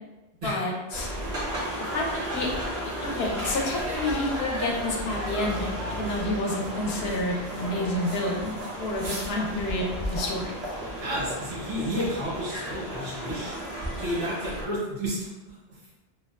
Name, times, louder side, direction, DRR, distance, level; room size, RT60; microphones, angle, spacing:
voice 1, 0.4-1.1 1.8-2.5 3.0-8.5 8.8-10.5, left 1 dB, 70° left, -1 dB, 0.8 m, -29 dB
sound 1, 0.9-14.6, equal, 50° right, 0.7 m, -33 dB
voice 2, 11.0-13.6 14.0-15.2, equal, 75° right, -8 dB, 1.1 m, -31 dB
2.6 x 2.1 x 2.2 m, 1.1 s
omnidirectional pair, 1.1 m